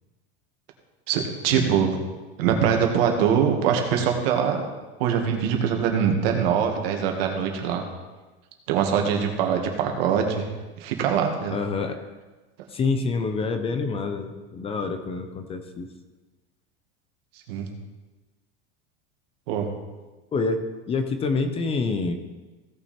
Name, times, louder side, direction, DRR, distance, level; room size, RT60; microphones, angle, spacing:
voice 1, 1.1-2.0 2.4-4.6 5.0-7.8 8.7-10.5 10.8-11.6 17.5-17.7 19.5-19.7, right 7 dB, 80° right, 3 dB, 2.0 m, -23 dB
voice 2, 11.5-12.0 12.7-15.9 20.3-22.1, left 4 dB, 20° left, 8 dB, 0.6 m, -27 dB
16.5 x 6.2 x 4.3 m, 1.2 s
supercardioid pair, 160°, 29 cm